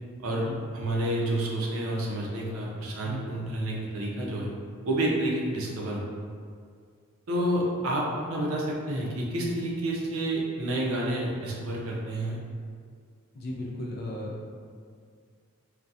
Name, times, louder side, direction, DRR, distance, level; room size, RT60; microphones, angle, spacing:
voice 1, 0.7-4.5 4.8-6.1 7.3-12.4, right 1 dB, 75° right, -3 dB, 0.5 m, -29 dB
voice 2, 13.3-14.4, left 1 dB, 45° left, -2 dB, 0.3 m, -35 dB
2.3 x 2.1 x 2.6 m, 2.1 s
head